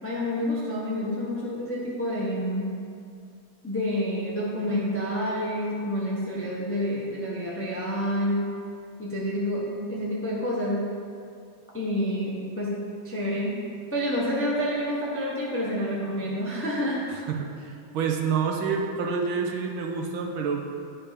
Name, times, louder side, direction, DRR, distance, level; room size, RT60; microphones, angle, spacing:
voice 1, 0.0-2.7 3.6-8.4 9.0-10.9 11.7-12.8 13.0-13.6 13.9-17.1, equal, 10° left, -5 dB, 0.6 m, -28 dB
voice 2, 17.3-20.7, right 5 dB, 75° right, 2 dB, 1.5 m, -28 dB
10.0 x 4.4 x 5.1 m, 2.4 s
omnidirectional pair, 2.4 m